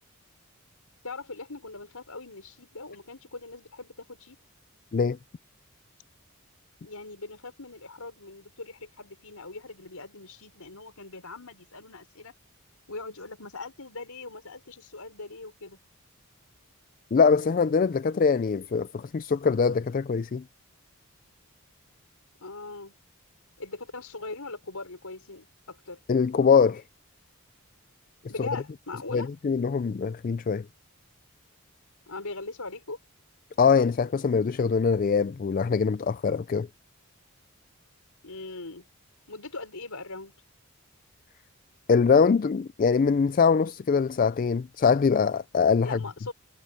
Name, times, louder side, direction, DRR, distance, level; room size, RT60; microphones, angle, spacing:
voice 1, 1.0-4.4 6.8-12.3 12.9-15.8 22.4-23.0 23.6-26.0 28.3-29.3 32.1-33.0 38.2-38.9 39.3-40.3 45.8-46.3, left 3 dB, 85° left, 5.2 m, -40 dB
voice 2, 17.1-20.4 26.1-26.8 28.4-28.5 29.1-30.7 33.6-36.7 41.9-46.0, left 5 dB, 40° left, 0.3 m, -23 dB
head